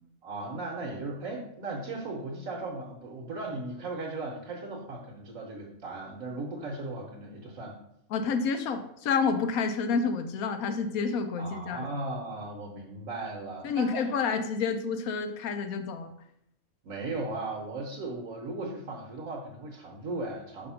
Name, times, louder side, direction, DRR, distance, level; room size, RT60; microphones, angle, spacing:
voice 1, 0.2-7.8 11.4-14.1 16.8-20.7, right 2 dB, 70° right, -1 dB, 1.3 m, -37 dB
voice 2, 8.1-11.9 13.6-16.1, left 5 dB, 85° left, 8 dB, 1.1 m, -29 dB
5.2 x 3.4 x 5.5 m, 0.76 s
omnidirectional pair, 1.5 m